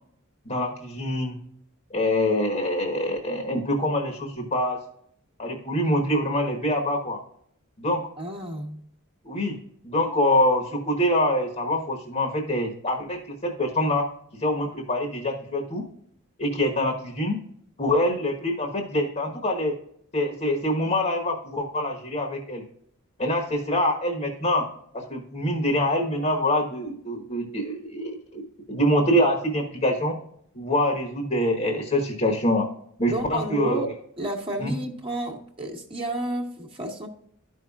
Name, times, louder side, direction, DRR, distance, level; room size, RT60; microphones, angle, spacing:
voice 1, 0.5-1.4 1.9-4.8 5.4-7.2 7.8-8.1 9.2-9.5 9.8-14.1 14.4-15.8 16.4-17.4 17.8-19.7 20.1-22.6 23.2-24.7 24.9-30.2 30.5-32.7 33.0-33.8 34.6-34.7, left 1 dB, 35° left, 2 dB, 1.2 m, -25 dB
voice 2, 8.2-8.8 33.1-33.9 34.2-37.1, right 1 dB, 25° right, 0 dB, 1.2 m, -31 dB
13.0 x 5.6 x 2.4 m, 0.68 s
head